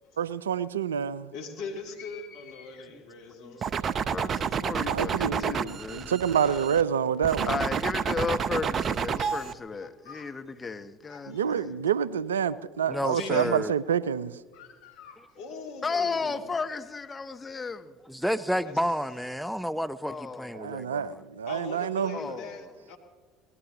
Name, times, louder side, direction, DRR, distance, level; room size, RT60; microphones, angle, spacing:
voice 1, 0.2-1.3 4.7-7.6 11.3-14.4 20.5-22.4, right 8 dB, 85° right, 0.4 m, -28 dB
voice 2, 1.3-3.7 6.0-6.8 9.0-10.3 11.1-11.4 13.0-13.6 14.5-16.5 18.6-18.7 21.5-23.0, left 4 dB, 65° left, 2.3 m, -42 dB
sound 1, 3.6-6.8 7.2-9.5, right 7 dB, 40° right, 0.7 m, -29 dB
voice 3, 4.1-6.2 7.4-11.8 15.8-17.9 20.0-20.7 22.1-22.7, left 4 dB, 25° left, 1.1 m, -34 dB
voice 4, 12.9-13.7 18.0-21.2, equal, ahead, 0.6 m, -31 dB
23.5 x 18.5 x 3.0 m
hypercardioid pair, 65°, 0 cm